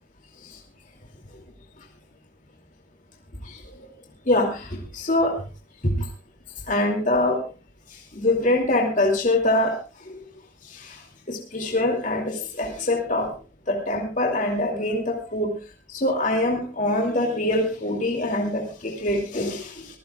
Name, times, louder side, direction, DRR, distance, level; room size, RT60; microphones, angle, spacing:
voice 1, 4.3-5.4 5.8-6.0 6.7-7.4 8.2-9.8 10.7-11.0 11.3-13.3 13.7-15.5 15.9-19.9, left 1 dB, 40° left, 1 dB, 2.6 m, -24 dB
25.0 x 15.0 x 2.4 m, 0.32 s
head